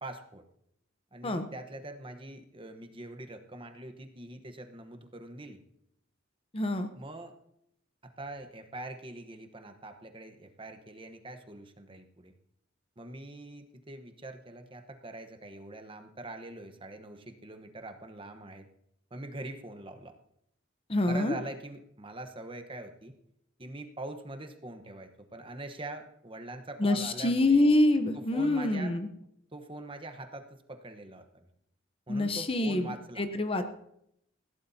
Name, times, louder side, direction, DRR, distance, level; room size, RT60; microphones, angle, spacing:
voice 1, 0.0-0.4 1.1-5.6 7.0-7.3 8.0-12.3 13.0-18.7 19.1-20.1 21.0-23.1 23.6-27.7 28.1-28.9 29.5-31.5 32.1-33.2, right 2 dB, 25° right, 7 dB, 1.1 m, -43 dB
voice 2, 6.5-6.9 20.9-21.3 26.8-29.1 32.1-33.7, left 2 dB, 30° left, 8 dB, 0.8 m, -26 dB
20.5 x 16.0 x 2.8 m, 0.75 s
head